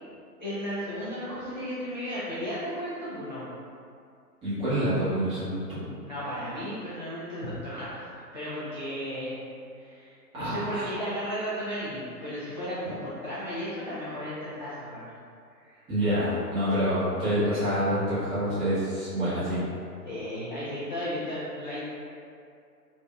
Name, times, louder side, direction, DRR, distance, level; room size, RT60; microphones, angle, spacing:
voice 1, 0.4-3.5 6.1-8.0 8.3-9.4 9.7-15.1 15.6-15.8 18.4-18.5 20.0-21.8, equal, 30° left, -12 dB, 0.4 m, -34 dB
voice 2, 4.4-5.8 10.3-10.8 15.9-19.6, equal, 10° right, -15 dB, 0.9 m, -27 dB
2.7 x 2.5 x 3.3 m, 2.4 s
figure-of-eight pair, 130°, 49 cm